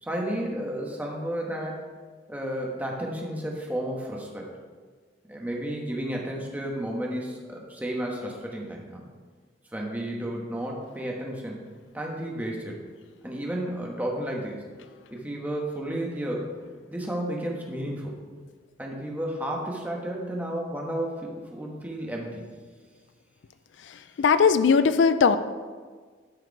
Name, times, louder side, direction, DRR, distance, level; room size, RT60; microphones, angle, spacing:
voice 1, 0.0-1.8 2.3-4.5 5.3-9.0 9.7-11.7 11.9-12.8 13.2-14.6 15.1-16.6 16.9-18.2 18.8-22.4, right 1 dB, 10° right, -2 dB, 1.2 m, -32 dB
voice 2, 24.2-25.4, left 5 dB, 75° left, 12 dB, 0.4 m, -19 dB
12.0 x 4.7 x 4.7 m, 1.5 s
head